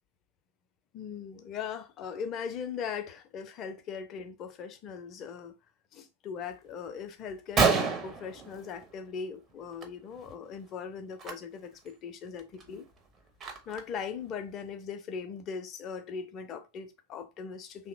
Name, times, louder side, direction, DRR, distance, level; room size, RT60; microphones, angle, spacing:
voice 1, 0.9-5.5 5.9-12.9 13.7-17.9, left 6 dB, 35° left, 0.4 m, -39 dB
Gunshot gunfire, 6.9-7.0 7.3-7.4 7.6-9.2 9.5-9.9 10.1-10.3 11.1-11.3 11.9-12.0 12.4-14.0, right 5 dB, 25° right, 0.5 m, -29 dB
2.8 x 2.0 x 2.5 m
figure-of-eight pair, 90°, 0 cm